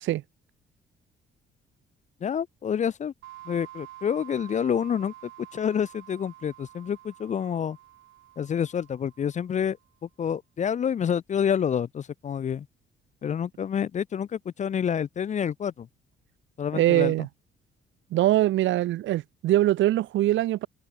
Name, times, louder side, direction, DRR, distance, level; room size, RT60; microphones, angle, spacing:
voice 1, 2.2-3.1 3.5-5.1 5.5-7.8 8.4-9.8 10.0-12.7 13.2-15.9 16.6-17.3, left 8 dB, 40° left, 0.4 m, -28 dB
sound 1, 3.2-9.7, right 16 dB, 90° right, 2.3 m, -48 dB
voice 2, 16.7-17.3 18.1-20.7, right 14 dB, 75° right, 0.6 m, -23 dB
cardioid pair, 90°, 20 cm